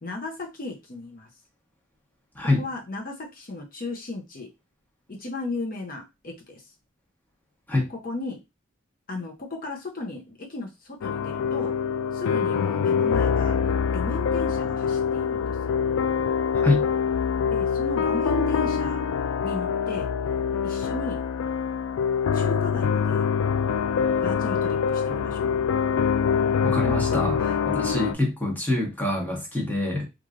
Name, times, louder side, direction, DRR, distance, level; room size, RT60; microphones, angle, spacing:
voice 1, 0.0-1.3 2.6-4.5 5.1-6.6 8.0-8.4 9.1-11.7 12.1-13.5 13.9-15.7 17.5-19.0 19.4-20.1 20.6-21.2 22.3-23.2 24.2-25.5 27.4-27.6, left 2 dB, 45° left, 1 dB, 0.7 m, -35 dB
voice 2, 2.3-2.6 7.7-7.9 16.5-16.9 26.6-30.1, left 2 dB, 10° left, -1 dB, 1.0 m, -25 dB
sound 1, 11.0-28.1, left 6 dB, 85° left, 0.3 m, -25 dB
3.1 x 2.4 x 2.4 m, 0.23 s
head